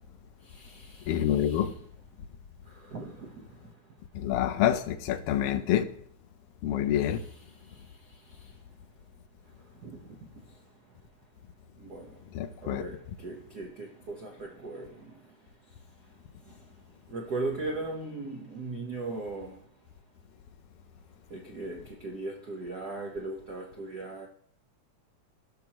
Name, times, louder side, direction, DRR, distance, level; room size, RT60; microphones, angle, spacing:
voice 1, 0.4-1.7 2.7-3.6 7.1-7.3 7.5-8.5 9.8-10.0 10.5-10.6 11.8-12.2 12.6-15.3 16.4-16.6 17.1-19.6 21.3-24.3, right 2 dB, 90° right, 0.8 m, -39 dB
voice 2, 1.1-1.7 4.1-5.9 6.6-7.2 12.3-12.8, left 11 dB, 75° left, 1.4 m, -27 dB
17.5 x 6.0 x 2.9 m
omnidirectional pair, 3.4 m